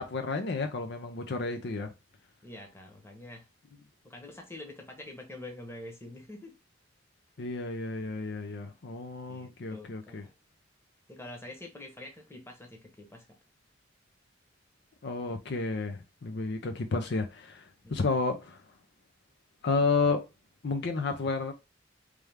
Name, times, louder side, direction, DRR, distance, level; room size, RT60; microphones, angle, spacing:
voice 1, 0.0-1.9 7.4-10.2 15.0-18.6 19.6-20.3 20.6-21.5, left 3 dB, 60° left, 0.6 m, -31 dB
voice 2, 2.4-3.5 4.0-6.5 9.3-10.3 11.1-13.3 17.8-18.2, left 1 dB, 15° left, 1.0 m, -46 dB
3.4 x 3.3 x 3.4 m
head